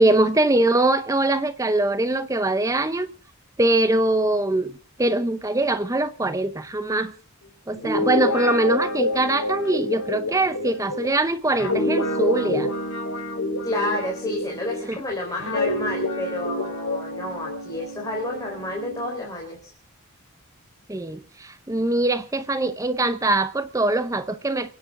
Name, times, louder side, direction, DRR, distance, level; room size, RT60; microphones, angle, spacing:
voice 1, 0.0-3.1 3.6-4.7 5.0-7.1 7.7-12.7 14.9-15.0 20.9-24.7, right 2 dB, 15° right, 0.6 m, -22 dB
Guitar, 7.7-14.9 15.4-19.1, left 1 dB, 85° left, 3.2 m, -27 dB
voice 2, 13.6-19.7, left 1 dB, 15° left, 4.1 m, -30 dB
29.0 x 9.9 x 3.7 m
head